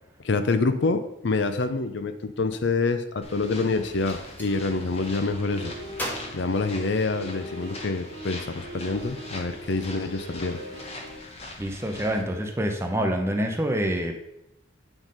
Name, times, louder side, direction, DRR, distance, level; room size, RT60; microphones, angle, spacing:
voice 1, 0.2-5.8 6.3-10.6, left 3 dB, 60° left, 10 dB, 0.5 m, -26 dB
sound 1, 3.2-12.2, left 2 dB, 30° left, 1.1 m, -42 dB
Gunshot gunfire, 4.0-4.5 5.9-7.4, equal, 10° left, 1.5 m, -37 dB
sound 2, 4.5-11.2, equal, 80° right, 2.1 m, -41 dB
voice 2, 11.6-14.2, equal, 15° right, 3 dB, 0.8 m, -26 dB
8.9 x 3.9 x 5.2 m, 0.83 s
head